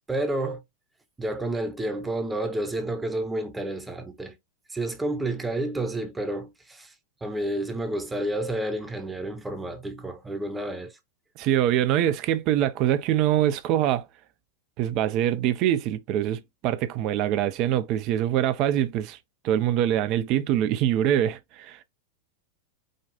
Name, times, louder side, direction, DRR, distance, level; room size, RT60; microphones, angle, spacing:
voice 1, 0.1-0.6 1.2-4.4 4.7-6.9 7.2-10.9, right 1 dB, 10° right, 1.0 m, -30 dB
voice 2, 11.4-14.1 14.8-19.2 19.4-21.8, right 11 dB, 40° right, 0.7 m, -24 dB
5.1 x 2.4 x 4.1 m
figure-of-eight pair, 90°, 0 cm